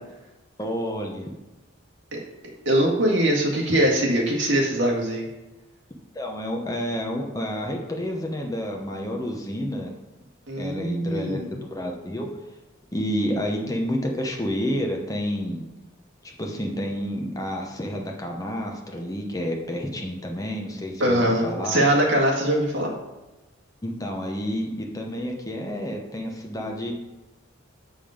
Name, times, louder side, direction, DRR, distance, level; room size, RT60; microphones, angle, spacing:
voice 1, 0.6-1.3 6.1-9.9 10.6-12.3 12.9-15.6 16.4-21.8 23.8-26.9, equal, 15° left, 1 dB, 0.9 m, -29 dB
voice 2, 2.7-5.3 10.5-11.5 21.0-22.9, right 1 dB, 65° right, -1 dB, 1.9 m, -22 dB
7.5 x 5.3 x 5.0 m, 1.0 s
head